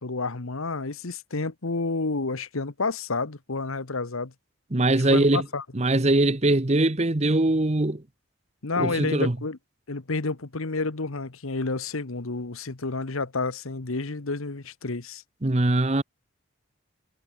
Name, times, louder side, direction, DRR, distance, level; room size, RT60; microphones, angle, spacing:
voice 1, 0.0-4.3 5.1-5.6 8.6-9.6 9.9-15.2, left 3 dB, 75° left, 1.3 m, -30 dB
voice 2, 4.7-5.4 5.7-8.0 8.8-9.4 15.4-16.0, right 2 dB, 30° right, 1.0 m, -22 dB
head